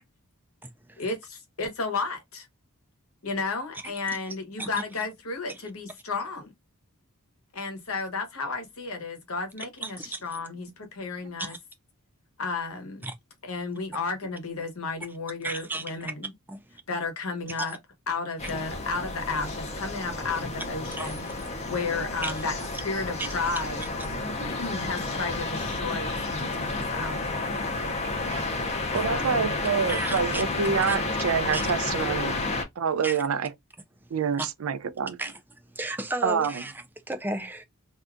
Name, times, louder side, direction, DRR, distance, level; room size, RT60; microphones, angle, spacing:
voice 1, 0.6-1.0 3.8-3.9 4.6-4.8 9.8-10.2 11.4-11.6 13.0-13.1 15.4-16.1 16.5-16.6 17.7-17.8 18.4-18.5 21.0-21.5 22.2-22.4 23.2-23.3 24.0-24.1 29.9-30.4 30.9-31.0 31.5-31.7 33.0-33.2 34.4-34.5 35.2-35.4 35.7-36.7 37.1-37.6, right 2 dB, 10° right, 0.4 m, -34 dB
voice 2, 1.6-2.5 3.2-6.5 7.5-11.5 12.4-13.1 13.4-16.3 16.9-17.8 18.1-21.2 21.7-22.6 22.8-23.8 24.5-27.2 29.0-29.5, left 4 dB, 75° left, 1.1 m, -32 dB
sound 1, 18.4-32.6, left 2 dB, 30° left, 0.7 m, -31 dB
voice 3, 24.1-24.5 27.7-28.5 28.9-32.4 32.8-33.5 34.1-35.2 36.2-36.6, right 6 dB, 70° right, 0.4 m, -27 dB
2.7 x 2.4 x 3.5 m
head